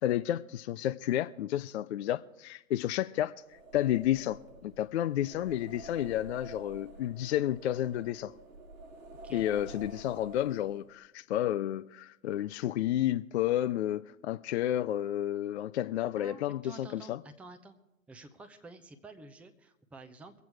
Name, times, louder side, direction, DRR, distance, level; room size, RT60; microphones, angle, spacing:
voice 1, 0.0-3.3 3.7-8.3 9.3-17.2, left 12 dB, 50° left, 0.5 m, -31 dB
sound 1, 3.4-11.0, right 2 dB, 70° right, 1.8 m, -49 dB
voice 2, 16.1-17.7 18.1-20.3, right 3 dB, 5° right, 0.6 m, -50 dB
23.5 x 8.2 x 4.6 m
figure-of-eight pair, 105°, 42 cm